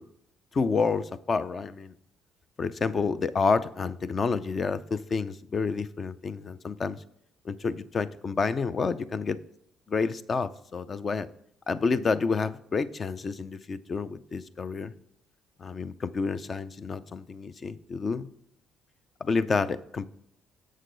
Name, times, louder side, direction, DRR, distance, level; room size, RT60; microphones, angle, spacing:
voice 1, 0.5-1.9 2.6-7.0 7.4-9.4 9.9-11.3 11.7-14.9 15.6-18.3 19.2-20.1, left 4 dB, 35° left, 14 dB, 0.5 m, -29 dB
7.5 x 6.4 x 3.9 m, 0.71 s
cardioid pair, 130°, 0 cm